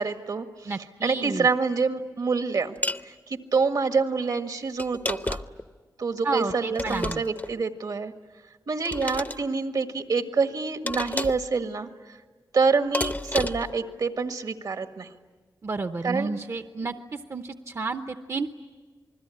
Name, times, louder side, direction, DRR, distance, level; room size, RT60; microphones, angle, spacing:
voice 1, 0.0-0.7 1.0-2.7 3.0-5.4 6.0-8.1 8.7-12.2 12.5-15.1 16.0-16.3, right 4 dB, 70° right, 7 dB, 1.7 m, -26 dB
voice 2, 0.7-1.5 6.2-7.2 15.6-18.6, right 3 dB, 45° right, 8 dB, 0.8 m, -31 dB
sound 1, 2.8-3.1 4.8-5.6 6.7-7.5 8.8-9.4 10.9-11.5 12.9-13.7, left 2 dB, 25° left, 0.8 m, -31 dB
28.0 x 21.0 x 9.9 m, 1.4 s
wide cardioid pair, 90°, 7 cm